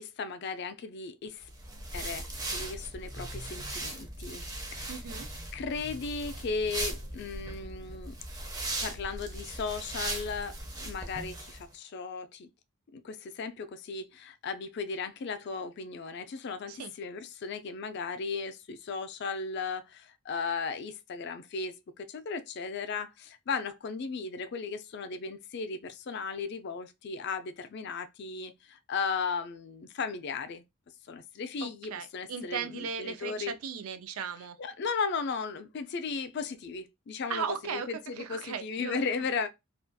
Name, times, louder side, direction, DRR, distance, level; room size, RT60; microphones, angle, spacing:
voice 1, 0.0-1.5 1.9-4.4 4.7-4.9 5.5-8.1 8.8-12.5 12.9-30.6 31.1-33.5 34.6-37.4 37.7-37.8 38.1-39.5, left 5 dB, 50° left, 0.4 m, -36 dB
sound 1, 1.4-11.6, right 1 dB, 20° right, 0.4 m, -38 dB
voice 2, 4.9-5.3 16.7-16.9 31.6-34.6 37.3-39.0, right 6 dB, 80° right, 0.4 m, -37 dB
2.4 x 2.2 x 2.6 m
head